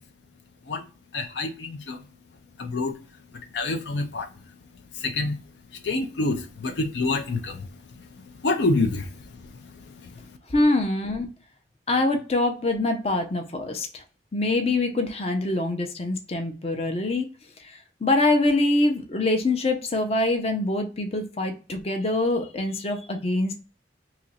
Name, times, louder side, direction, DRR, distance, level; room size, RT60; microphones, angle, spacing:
voice 1, 1.1-2.0 2.6-2.9 3.5-4.2 5.1-5.4 5.9-7.5 8.4-9.0, left 2 dB, 80° left, 0.5 m, -26 dB
voice 2, 10.5-11.3 11.9-14.0 14.3-17.3 18.0-23.5, left 2 dB, 35° left, 0.6 m, -24 dB
2.9 x 2.5 x 4.1 m
head